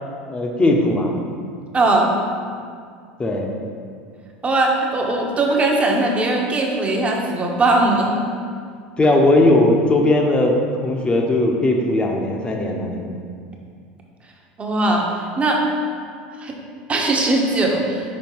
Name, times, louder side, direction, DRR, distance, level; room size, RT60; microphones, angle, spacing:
voice 1, 0.3-1.2 3.2-3.5 9.0-10.5 10.8-13.2, left 2 dB, 20° left, 1 dB, 0.9 m, -18 dB
voice 2, 1.7-2.1 4.4-8.1 14.6-15.1 15.4-15.6 16.4-16.5 16.9-18.0, right 2 dB, 25° right, 0 dB, 1.1 m, -19 dB
5.4 x 4.5 x 4.6 m, 2.2 s
hypercardioid pair, 90°, 5 cm